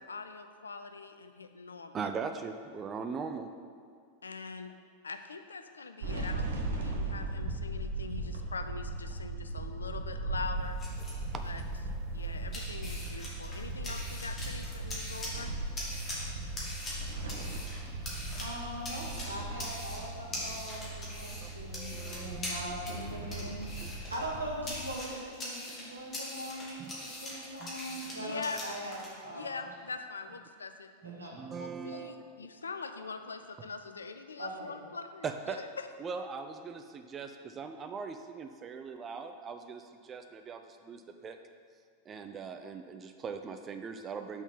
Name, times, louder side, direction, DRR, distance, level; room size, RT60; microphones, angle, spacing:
voice 1, 0.1-2.0 4.2-4.7 5.0-10.8 11.4-11.6 12.1-15.5 28.2-28.6 29.3-30.9 31.6-35.9, left 4 dB, 75° left, 8 dB, 0.4 m, -42 dB
voice 2, 1.9-3.5 11.3-11.4 17.6-17.7 20.4-20.6 21.4-22.4 23.2-23.5 23.8-23.9 26.8-27.1 27.6-27.7 28.1-28.2 31.0-32.2 35.2-35.6 36.0-41.4 42.1-44.4, right 5 dB, 25° right, 7 dB, 0.4 m, -41 dB
sound 1, 6.0-24.9, right 2 dB, 65° right, 0.8 m, -38 dB
sound 2, 10.5-29.1, left 1 dB, 25° left, 1.6 m, -43 dB
voice 3, 18.4-29.6 31.0-31.3 34.4-34.8, equal, 80° right, -3 dB, 1.2 m, -41 dB
6.0 x 3.9 x 5.5 m, 2.1 s
figure-of-eight pair, 90°, 0 cm